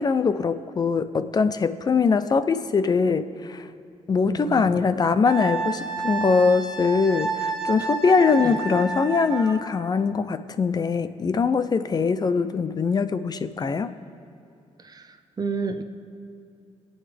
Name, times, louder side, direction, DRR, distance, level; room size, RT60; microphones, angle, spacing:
voice 1, 0.0-3.7 4.1-13.9, left 5 dB, 35° left, 12 dB, 0.5 m, -22 dB
voice 2, 4.3-4.8 8.4-8.5 14.8-15.0 15.4-15.8, right 4 dB, 35° right, 8 dB, 0.7 m, -30 dB
Wind instrument woodwind instrument, 5.3-9.6, right 4 dB, 5° right, 1.7 m, -29 dB
26.0 x 8.8 x 3.4 m, 2.5 s
wide cardioid pair, 135°, 12 cm